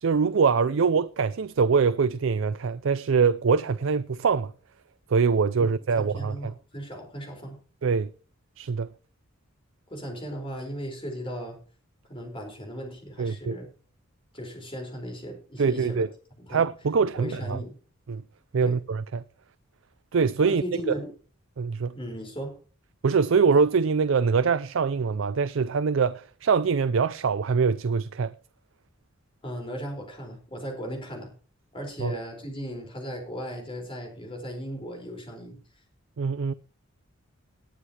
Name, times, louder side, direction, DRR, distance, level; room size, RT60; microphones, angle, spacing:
voice 1, 0.0-4.5 5.1-6.5 7.8-8.1 8.6-8.9 13.2-13.6 15.6-16.1 16.5-17.6 18.1-18.2 18.5-19.2 20.1-20.6 21.6-21.9 23.0-28.3 32.0-32.1 36.2-36.5, right 5 dB, 65° right, 0.4 m, -23 dB
voice 2, 5.6-7.6 9.9-11.6 12.1-13.7 14.3-16.0 16.4-16.6 17.2-17.7 18.6-18.8 20.4-21.1 21.9-22.5 29.4-31.3 31.7-35.6, equal, 25° left, 4.4 m, -37 dB
19.5 x 9.8 x 2.9 m
head